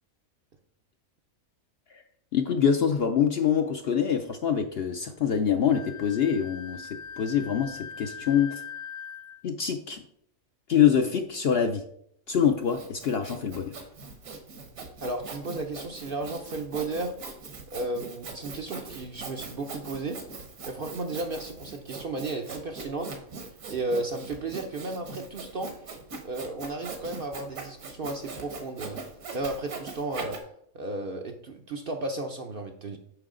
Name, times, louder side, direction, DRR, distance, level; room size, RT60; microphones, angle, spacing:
voice 1, 2.3-8.6 9.4-10.0 10.7-11.8 12.3-13.8, left 8 dB, 60° left, 6 dB, 0.7 m, -25 dB
Wind instrument woodwind instrument, 5.7-9.4, left 7 dB, 75° left, 1.1 m, -41 dB
Sawing, 12.3-30.4, right 4 dB, 70° right, 1.6 m, -41 dB
voice 2, 15.0-17.1 17.7-20.2 20.7-25.7 26.2-29.0 29.3-30.4 30.7-33.0, right 2 dB, 50° right, 4 dB, 0.7 m, -34 dB
7.9 x 5.8 x 3.7 m, 0.68 s
omnidirectional pair, 1.5 m